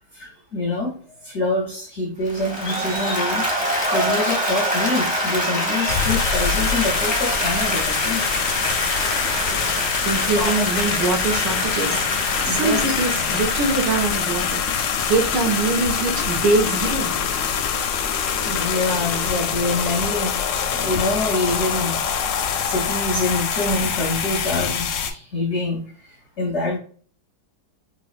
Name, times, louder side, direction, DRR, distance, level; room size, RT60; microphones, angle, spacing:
voice 1, 0.1-1.0 1.2-3.5 3.9-8.2 10.4-10.6 12.3-12.9 18.4-20.4 20.8-21.9 22.7-25.9 26.4-26.8, left 2 dB, 60° left, 0 dB, 0.7 m, -25 dB
Applause, 2.3-15.4, equal, 5° right, 0.6 m, -26 dB
sound 1, 5.9-25.1, left 7 dB, 85° left, 1.3 m, -24 dB
sound 2, 7.1-22.8, right 2 dB, 45° right, 0.9 m, -40 dB
voice 2, 10.0-12.1 12.4-14.6 15.0-17.1, right 3 dB, 75° right, 3 dB, 1.5 m, -23 dB
4.3 x 2.2 x 2.4 m, 0.43 s
omnidirectional pair, 1.9 m